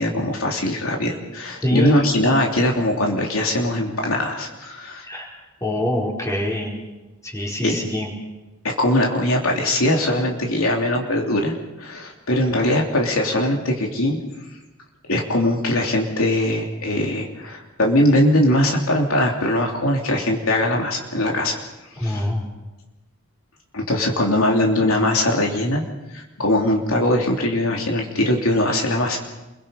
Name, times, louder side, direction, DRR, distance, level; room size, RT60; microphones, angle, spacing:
voice 1, 0.0-5.0 7.6-7.8 8.6-14.2 15.1-21.6 22.0-22.2 23.7-25.8 26.1-29.2, left 1 dB, 70° left, 0 dB, 3.1 m, -21 dB
voice 2, 1.6-2.0 5.0-5.3 5.6-6.7 7.2-8.1 22.0-22.4, left 1 dB, 15° left, -2 dB, 4.8 m, -24 dB
29.0 x 22.5 x 5.2 m, 1.1 s
head